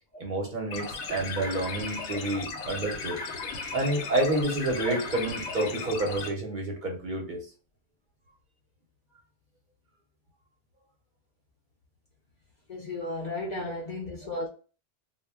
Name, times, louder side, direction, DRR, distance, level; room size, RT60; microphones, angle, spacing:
voice 1, 0.2-3.2 3.7-7.4 13.6-13.7, right 2 dB, 50° right, 0.7 m, -29 dB
sound 1, 0.7-6.3, left 4 dB, 85° left, 0.9 m, -36 dB
voice 2, 12.7-14.5, left 1 dB, 55° left, 0.5 m, -34 dB
2.1 x 2.0 x 3.3 m
omnidirectional pair, 1.2 m